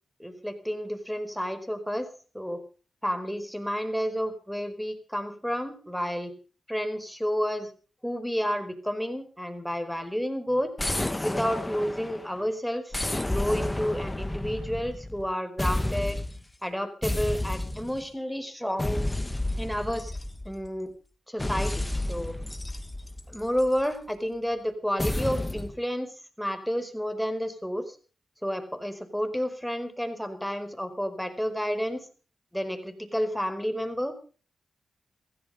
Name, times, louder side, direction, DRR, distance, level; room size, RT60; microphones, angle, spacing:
voice 1, 0.2-2.6 3.0-6.3 6.7-7.7 8.0-10.7 11.2-16.2 16.6-19.0 19.6-20.1 20.4-20.9 21.3-22.4 23.3-26.1 26.4-28.0 28.4-32.1 32.5-34.2, equal, ahead, 8 dB, 4.8 m, -30 dB
sound 1, 10.8-12.4 12.9-15.3 15.6-16.4 17.0-18.1 18.8-20.7 21.4-23.8 25.0-25.7, left 1 dB, 20° left, 1.7 m, -31 dB
16.0 x 15.5 x 5.3 m, 0.40 s
supercardioid pair, 45°, 0 cm